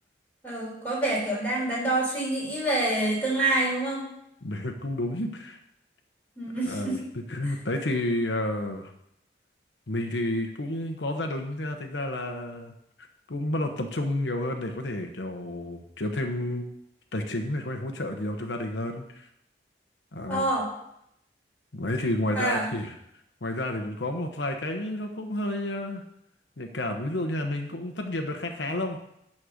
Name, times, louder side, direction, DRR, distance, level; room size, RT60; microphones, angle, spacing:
voice 1, 0.4-4.1 6.4-7.0 7.5-7.6 20.3-20.7 22.4-22.7, right 2 dB, 10° left, -5 dB, 3.6 m, -27 dB
voice 2, 4.4-5.6 6.6-7.0 7.3-8.9 9.9-12.7 13.0-16.7 17.1-19.3 20.1-20.4 21.7-22.9 23.4-26.0 26.6-29.0, left 1 dB, 90° left, 4 dB, 1.0 m, -30 dB
11.5 x 4.3 x 6.6 m, 0.78 s
head